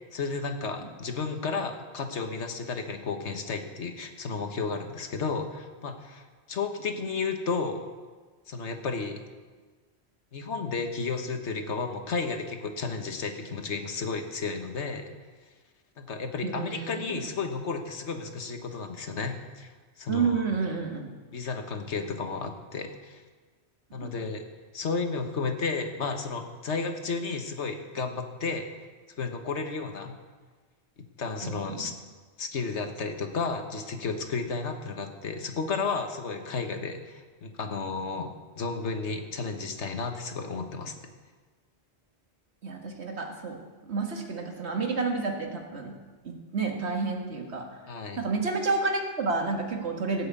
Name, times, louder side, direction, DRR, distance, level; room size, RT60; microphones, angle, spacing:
voice 1, 0.1-6.2 6.5-7.9 8.5-9.2 10.3-15.1 16.0-19.7 20.0-20.4 21.3-23.2 23.9-24.4 24.7-28.7 29.2-30.1 31.2-31.9 32.4-40.9 47.9-48.2, left 4 dB, 80° left, 5 dB, 1.5 m, -32 dB
voice 2, 16.4-17.2 20.1-21.1 23.9-24.1 31.4-31.9 40.8-40.9 42.6-46.0 46.2-47.7 48.2-50.3, right 4 dB, 70° right, 2 dB, 1.9 m, -30 dB
17.0 x 6.5 x 8.2 m, 1.4 s
omnidirectional pair, 1.2 m